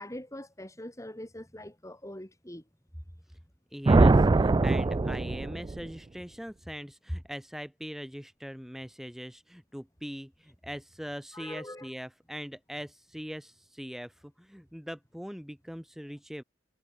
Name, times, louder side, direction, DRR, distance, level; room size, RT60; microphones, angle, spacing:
voice 1, 0.0-2.6 11.3-11.9, left 1 dB, 15° left, 5.4 m, -43 dB
voice 2, 3.7-16.4, equal, ahead, 4.5 m, -41 dB
sound 1, 3.9-5.8, right 3 dB, 20° right, 0.3 m, -22 dB
head